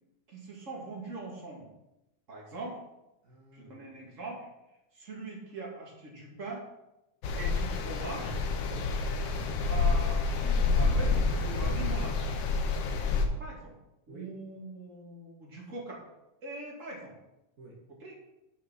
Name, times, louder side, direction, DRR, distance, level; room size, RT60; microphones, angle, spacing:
voice 1, 0.3-1.7 2.3-2.8 3.5-4.5 4.9-6.7 7.4-8.4 9.7-12.2 13.4-13.7 14.1-16.0 16.4-17.1 18.0-18.2, right 2 dB, 30° right, -3 dB, 2.3 m, -41 dB
voice 2, 3.2-3.9 8.6-9.0 13.0-13.5 14.1-14.4 17.6-17.9, right 2 dB, 45° right, -3 dB, 1.0 m, -50 dB
sound 1, 7.2-13.3, left 4 dB, 65° left, 1.7 m, -28 dB
6.8 x 6.1 x 6.3 m, 0.92 s
omnidirectional pair, 3.3 m